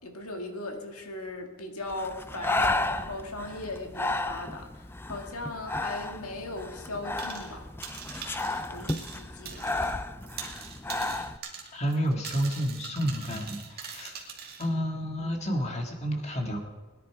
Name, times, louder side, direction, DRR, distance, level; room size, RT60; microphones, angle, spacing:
voice 1, 0.0-7.7 8.7-9.8, left 2 dB, 80° left, 3 dB, 2.0 m, -38 dB
Breathing, 1.9-11.4, left 2 dB, 10° left, 0.3 m, -33 dB
sound 1, 7.2-7.5 7.8-10.0 10.2-14.7, right 6 dB, 45° right, 2.1 m, -42 dB
voice 2, 11.7-14.2 14.6-16.6, equal, 30° left, 2 dB, 1.8 m, -30 dB
20.5 x 10.5 x 4.8 m, 1.2 s
head